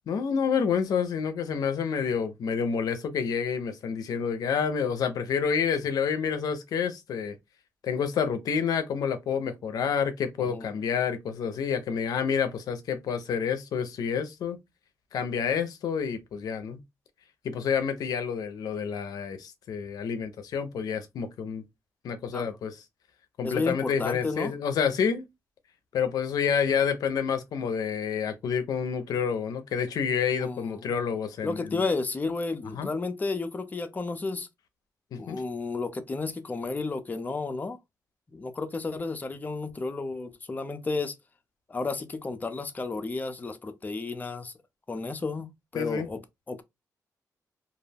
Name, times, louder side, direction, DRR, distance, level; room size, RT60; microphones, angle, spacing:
voice 1, 0.1-7.4 7.8-14.6 15.1-16.8 17.4-21.6 22.0-22.8 23.4-25.3 25.9-31.8 32.7-32.9 35.1-35.4 45.7-46.1, left 6 dB, 80° left, 0.5 m, -28 dB
voice 2, 23.4-24.5 30.4-30.8 31.4-34.5 35.2-37.8 38.3-41.1 41.7-44.5 44.9-46.2 46.5-46.6, left 3 dB, 25° left, 0.5 m, -32 dB
2.3 x 2.1 x 3.3 m
cardioid pair, 85°, 6 cm